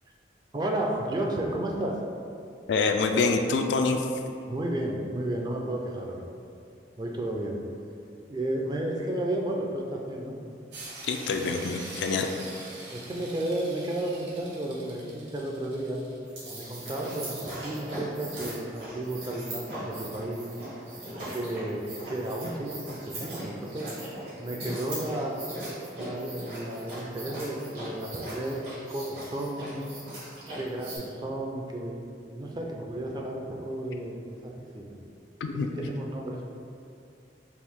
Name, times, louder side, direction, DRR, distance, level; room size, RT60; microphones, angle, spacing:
voice 1, 0.5-2.0 4.5-6.2 7.0-7.6 8.3-10.4 12.9-16.0 16.5-17.4 17.6-20.4 21.3-23.9 24.4-25.4 26.0-28.6 28.9-29.9 30.5-32.0 32.3-34.9 35.8-36.4, right 1 dB, 25° right, 0 dB, 0.4 m, -32 dB
voice 2, 2.7-4.1 11.0-12.3 35.4-35.7, left 4 dB, 80° left, 4 dB, 0.3 m, -26 dB
sound 1, 10.7-16.2, right 2 dB, 90° right, 0.7 m, -44 dB
Shaking Listerine, 16.2-31.0, right 1 dB, 65° right, 1.5 m, -39 dB
4.4 x 2.5 x 3.6 m, 2.5 s
head